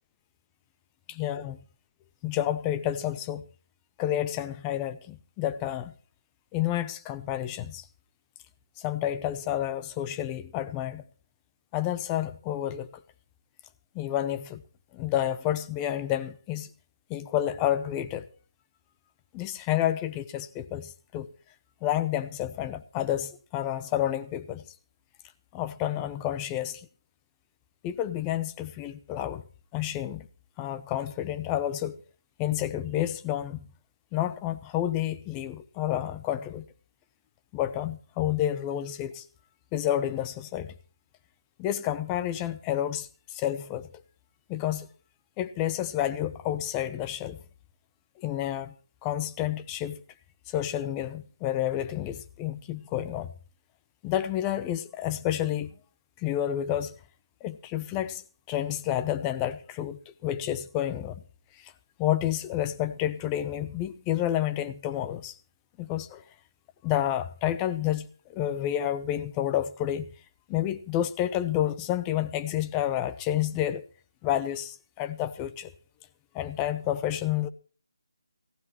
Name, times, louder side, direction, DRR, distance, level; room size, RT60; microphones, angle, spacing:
voice 1, 1.1-1.6 2.2-3.5 4.0-5.9 6.5-7.8 8.8-11.0 11.7-13.0 13.9-14.6 14.9-16.7 17.1-18.3 19.3-21.3 21.8-24.6 25.5-26.9 27.8-29.4 29.7-30.3 30.6-32.0 32.4-33.7 34.1-36.7 37.5-39.2 39.7-40.7 41.6-43.9 44.5-44.9 45.4-47.4 48.2-48.7 49.0-50.0 50.5-53.3 54.0-55.7 56.2-56.9 57.4-58.2 58.5-61.2 61.6-61.7 62.0-65.4 65.8-66.2 66.8-70.1 70.5-73.8 74.2-75.7 76.3-77.5, left 12 dB, 15° left, 0.7 m, -30 dB
22.0 x 15.0 x 3.1 m
figure-of-eight pair, 165°, 2 cm